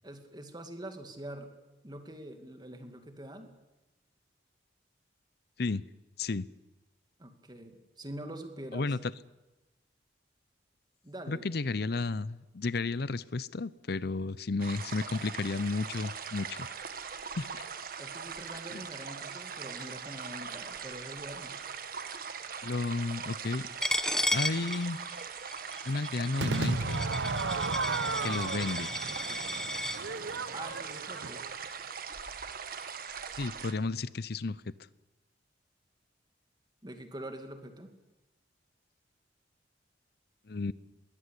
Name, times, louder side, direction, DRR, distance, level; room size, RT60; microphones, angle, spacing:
voice 1, 0.0-1.5 1.8-3.5 7.2-8.9 11.0-11.5 18.0-21.6 30.5-31.5 36.8-37.9, right 1 dB, 25° right, 6 dB, 2.4 m, -44 dB
voice 2, 8.7-9.1 11.3-16.7 17.4-17.5 18.7-18.8 22.6-23.7 24.3-25.0 25.8-27.0 28.2-28.9 33.4-34.6 40.5-40.7, left 3 dB, 60° left, 18 dB, 0.7 m, -32 dB
sound 1, 14.6-33.7, right 6 dB, 50° right, 1.6 m, -41 dB
Coin (dropping), 23.8-30.0, left 1 dB, 5° left, 0.9 m, -34 dB
Crowd / Fireworks, 26.4-31.6, right 3 dB, 75° right, 1.0 m, -34 dB
22.0 x 17.5 x 8.4 m, 1.0 s
head